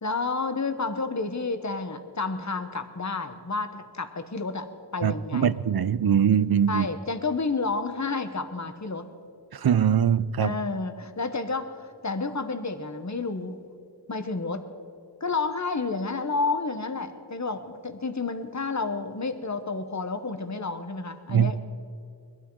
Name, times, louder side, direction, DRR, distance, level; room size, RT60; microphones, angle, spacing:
voice 1, 0.0-5.6 6.7-9.1 10.4-13.6 14.1-14.7 15.2-21.6, left 3 dB, 40° left, 9 dB, 1.1 m, -30 dB
voice 2, 5.0-6.9 9.5-10.6 21.3-21.5, right 8 dB, 60° right, 18 dB, 0.5 m, -22 dB
22.0 x 12.5 x 4.7 m, 2.5 s
wide cardioid pair, 40°, 43 cm